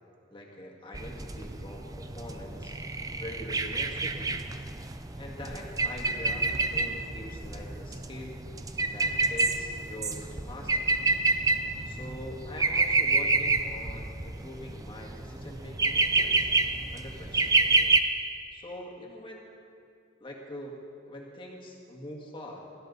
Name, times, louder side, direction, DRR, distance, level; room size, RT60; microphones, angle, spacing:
voice 1, 0.3-2.7 3.2-4.4 5.2-8.4 8.9-10.9 11.8-16.5 16.9-17.6 18.5-19.5 20.2-20.8 21.1-22.6, left 1 dB, 25° left, -1 dB, 1.9 m, -43 dB
sound 1, 0.9-18.0, right 3 dB, 20° right, 0.6 m, -28 dB
17.5 x 13.0 x 4.0 m, 2.4 s
head